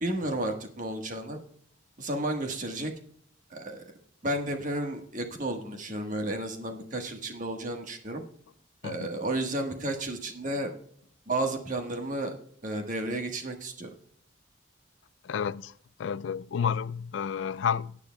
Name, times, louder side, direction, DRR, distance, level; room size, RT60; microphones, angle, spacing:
voice 1, 0.0-1.4 2.0-2.9 3.5-3.9 4.2-8.2 8.8-10.7 11.3-12.4 12.6-13.9, right 1 dB, 40° right, 1.4 m, -32 dB
voice 2, 15.2-15.7 16.0-18.0, left 7 dB, 70° left, 0.3 m, -30 dB
18.0 x 9.8 x 2.2 m
head